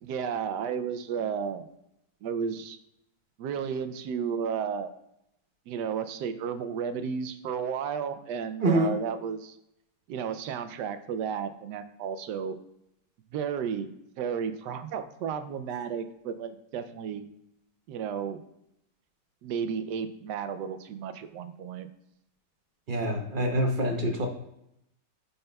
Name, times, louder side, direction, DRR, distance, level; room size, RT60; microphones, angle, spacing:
voice 1, 0.0-1.7 2.2-2.8 3.4-4.9 5.7-9.6 10.1-12.6 13.3-13.9 14.2-17.3 17.9-18.4 19.4-21.9, right 7 dB, 80° right, 10 dB, 1.1 m, -33 dB
voice 2, 8.6-8.9 22.9-24.3, right 1 dB, 50° right, 3 dB, 0.6 m, -25 dB
8.9 x 5.4 x 2.3 m, 0.82 s
omnidirectional pair, 1.9 m